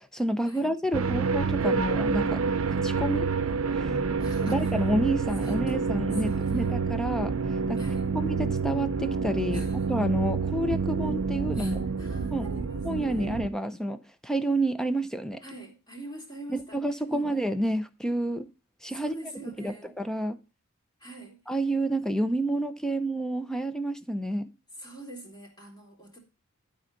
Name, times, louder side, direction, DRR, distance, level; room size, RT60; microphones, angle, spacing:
voice 1, 0.0-2.4 2.7-3.3 3.7-4.0 4.4-7.3 7.7-7.8 8.1-11.8 12.3-12.5 12.8-15.4 16.5-18.5 18.8-19.1 19.6-20.4 21.5-24.5, right 1 dB, 5° left, 0.6 m, -29 dB
sound 1, 0.9-13.5, right 5 dB, 70° right, 0.7 m, -28 dB
voice 2, 4.2-4.8 5.4-5.8 6.1-6.8 7.7-8.1 9.5-9.9 11.5-13.4 15.4-17.3 18.9-19.9 21.0-21.6 24.7-26.2, right 1 dB, 20° left, 2.8 m, -45 dB
12.0 x 4.4 x 5.2 m
head